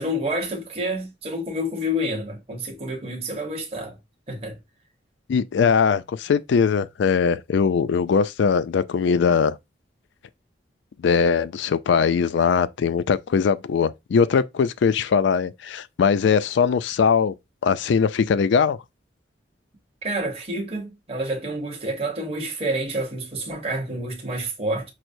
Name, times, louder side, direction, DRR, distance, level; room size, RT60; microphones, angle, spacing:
voice 1, 0.0-4.0 4.3-4.6 20.0-24.9, equal, 30° right, 1.0 m, -28 dB
voice 2, 5.3-9.6 11.0-17.3 17.6-18.8, left 6 dB, 70° left, 0.3 m, -21 dB
6.0 x 2.1 x 2.6 m
head